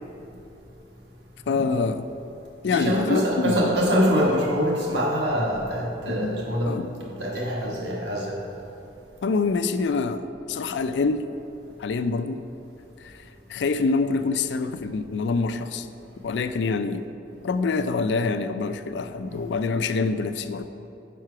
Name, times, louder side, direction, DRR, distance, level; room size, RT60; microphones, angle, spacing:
voice 1, 1.5-2.1 2.6-3.7 6.1-7.1 9.2-10.2 10.5-11.3 11.8-12.4 13.0-13.2 13.5-15.9 16.2-17.1 17.4-20.6, left 4 dB, 75° left, 10 dB, 0.4 m, -26 dB
voice 2, 2.7-6.7 7.2-8.4 19.3-19.4, equal, 70° right, -3 dB, 1.4 m, -24 dB
6.1 x 5.6 x 5.7 m, 2.9 s
head